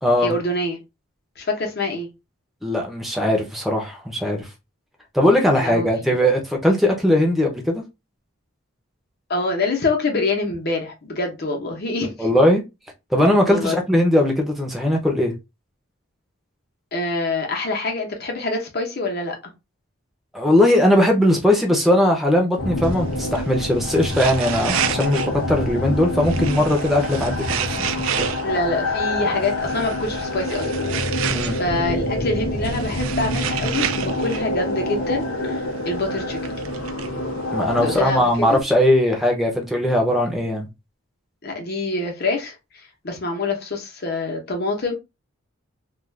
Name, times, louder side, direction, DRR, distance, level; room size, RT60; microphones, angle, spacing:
voice 1, 0.2-0.8 1.4-2.1 5.5-6.2 9.3-12.3 13.5-13.8 16.9-19.5 28.4-30.7 31.0-36.4 37.8-38.6 41.4-44.9, left 2 dB, 50° left, 0.9 m, -26 dB
voice 2, 2.6-4.5 5.1-7.8 12.2-12.6 13.1-15.3 20.3-28.3 31.3-31.6 37.5-40.7, left 1 dB, ahead, 0.6 m, -19 dB
sound 1, 22.6-38.0, left 1 dB, 75° left, 0.7 m, -26 dB
sound 2, 22.8-38.6, right 10 dB, 75° right, 0.3 m, -32 dB
2.4 x 2.3 x 3.2 m
head